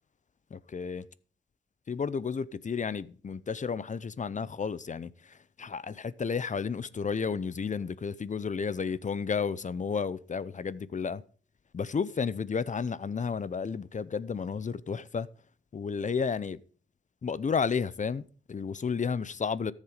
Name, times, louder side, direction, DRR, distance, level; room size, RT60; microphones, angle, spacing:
voice 1, 0.5-1.1 1.9-11.2 11.7-15.3 15.7-16.6 17.2-19.7, left 5 dB, 40° left, 0.7 m, -32 dB
13.5 x 7.4 x 5.0 m
cardioid pair, 75°, 19 cm